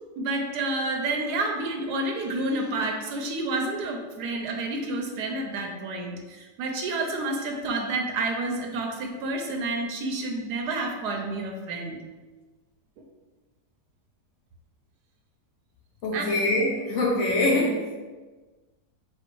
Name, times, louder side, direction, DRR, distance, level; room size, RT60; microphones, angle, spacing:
voice 1, 0.2-12.0 16.1-16.2, right 2 dB, 85° right, 2 dB, 1.2 m, -29 dB
voice 2, 16.0-17.9, left 1 dB, 65° left, -2 dB, 0.8 m, -24 dB
4.4 x 2.4 x 4.5 m, 1.3 s
omnidirectional pair, 1.7 m